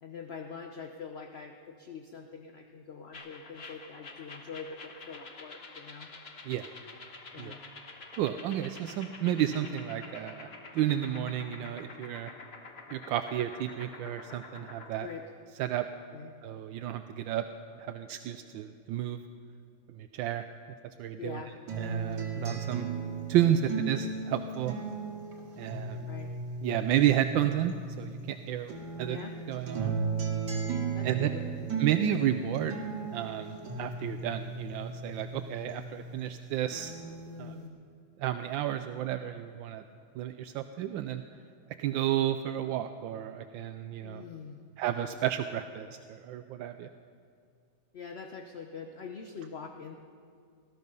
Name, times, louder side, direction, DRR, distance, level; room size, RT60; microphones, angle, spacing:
voice 1, 0.0-6.1 7.3-7.6 15.0-15.3 16.1-16.3 21.2-21.6 26.1-26.3 29.0-29.4 30.9-31.5 37.3-37.8 44.0-44.6 47.9-50.0, left 6 dB, 55° left, 5 dB, 0.7 m, -44 dB
sound 1, 3.1-14.9, left 3 dB, 35° left, 1.3 m, -48 dB
voice 2, 8.2-12.3 12.9-15.1 15.6-15.9 16.4-17.4 17.8-19.2 20.0-20.5 21.0-21.4 21.8-22.9 23.3-24.8 25.6-26.0 26.6-28.7 29.0-29.2 29.5-29.9 31.0-31.3 31.8-32.8 33.1-37.1 37.4-37.5 38.2-39.8 40.2-41.2 41.8-44.2 44.8-46.9, right 11 dB, 80° right, 9 dB, 1.3 m, -31 dB
sound 2, 21.7-28.3 28.7-36.3 36.7-37.7, right 4 dB, 60° right, 2.4 m, -36 dB
18.5 x 14.0 x 5.4 m, 2.4 s
omnidirectional pair, 2.1 m